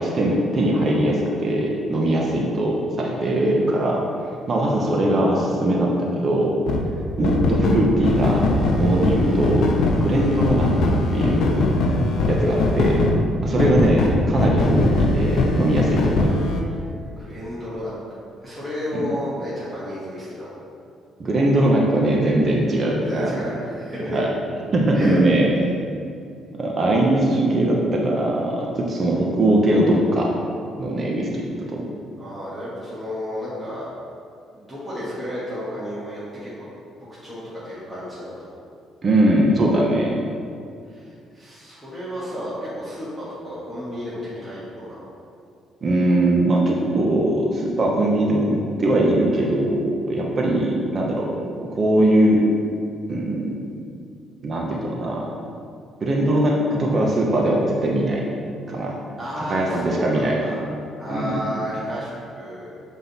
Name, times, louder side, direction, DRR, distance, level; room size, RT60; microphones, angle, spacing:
voice 1, 0.0-4.0 4.5-6.6 7.2-8.5 8.8-10.7 11.1-11.6 12.3-13.0 13.4-16.3 18.9-19.1 21.2-23.4 24.0-24.3 24.7-25.5 26.6-30.3 30.8-31.9 39.0-40.1 45.8-51.3 51.8-52.4 53.1-53.6 54.4-55.3 56.0-58.2 58.7-59.0 59.5-60.4 61.1-61.4, right 1 dB, 35° right, -2 dB, 0.8 m, -20 dB
sound 1, 6.7-6.8 7.2-13.2 13.6-16.6, left 2 dB, 65° left, 0.7 m, -21 dB
voice 2, 17.2-20.5 23.0-24.2 24.9-25.2 32.2-33.9 34.5-36.6 37.2-38.4 40.9-45.1 59.2-60.6 61.0-62.7, equal, 5° right, -11 dB, 1.5 m, -32 dB
7.5 x 3.7 x 4.1 m, 2.4 s
cardioid pair, 130°, 0 cm